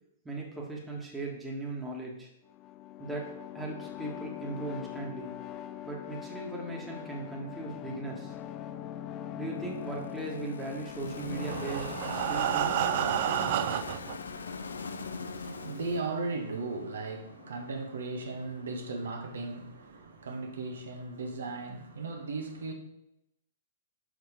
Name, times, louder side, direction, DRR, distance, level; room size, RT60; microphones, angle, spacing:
voice 1, 0.2-2.3 3.0-5.3 5.8-8.4 9.4-12.8, right 2 dB, 10° right, 1.6 m, -38 dB
sound 1, 2.4-17.9, left 10 dB, 30° left, 0.6 m, -44 dB
sound 2, 9.6-17.6, left 4 dB, 75° left, 0.5 m, -40 dB
Breathing, 11.2-14.2 14.9-15.0 15.4-15.5 15.9-16.0, right 13 dB, 50° right, 0.3 m, -30 dB
voice 2, 14.8-22.7, right 3 dB, 70° right, 1.3 m, -37 dB
6.2 x 5.0 x 5.0 m
figure-of-eight pair, 110°, 0 cm